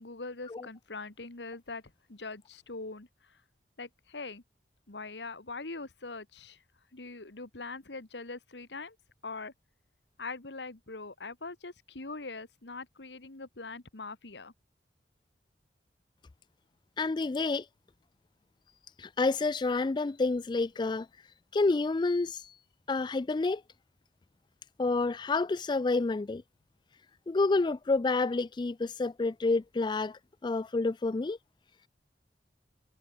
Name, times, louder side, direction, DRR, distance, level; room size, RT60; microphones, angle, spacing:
voice 1, 0.0-1.8 2.1-3.1 3.8-4.4 4.9-6.6 6.9-9.0 9.2-9.5 10.2-14.5, left 3 dB, 80° left, 1.9 m, -42 dB
voice 2, 17.0-17.6 19.0-21.1 21.5-22.4 22.9-23.6 24.8-26.4 27.3-31.4, left 3 dB, 25° left, 0.3 m, -29 dB
head